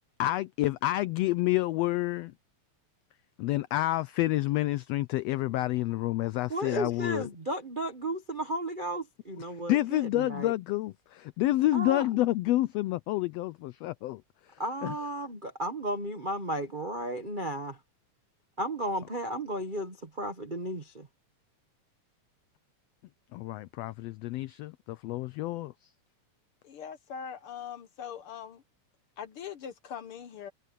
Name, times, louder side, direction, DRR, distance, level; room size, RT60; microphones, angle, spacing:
voice 1, 0.2-2.3 3.4-7.3 9.7-15.0 23.3-25.9, left 16 dB, 80° left, 1.4 m, -29 dB
voice 2, 6.5-10.5 11.7-12.1 14.6-17.8 18.6-21.1, right 1 dB, 40° right, 0.6 m, -34 dB
voice 3, 26.6-28.6 29.2-30.5, left 8 dB, 65° left, 1.5 m, -41 dB
omnidirectional pair, 3.4 m